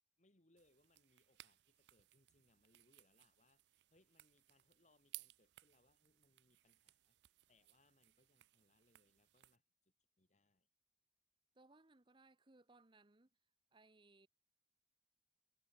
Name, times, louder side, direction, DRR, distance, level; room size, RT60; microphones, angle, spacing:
voice 1, 0.2-10.7, left 2 dB, 40° left, 2.4 m, -77 dB
sound 1, 0.6-9.6, right 19 dB, 70° right, 0.4 m, -62 dB
voice 2, 11.5-13.3 13.7-14.3, right 2 dB, 25° right, 0.9 m, -67 dB
head